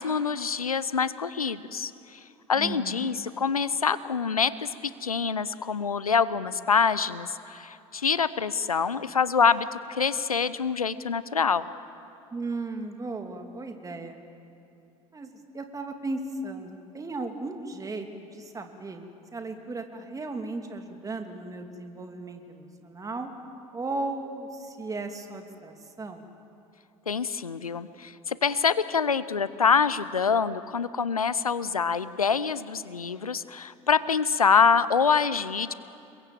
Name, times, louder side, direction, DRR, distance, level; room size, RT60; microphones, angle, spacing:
voice 1, 0.0-1.9 2.5-4.7 5.0-11.6 27.1-35.7, left 6 dB, 85° left, 16 dB, 0.6 m, -25 dB
voice 2, 2.5-3.1 12.3-14.2 15.1-18.1 18.3-19.0 19.3-23.3 23.7-26.2, right 2 dB, 20° right, 5 dB, 2.7 m, -36 dB
29.0 x 22.5 x 7.6 m, 2.7 s
figure-of-eight pair, 70°, 18 cm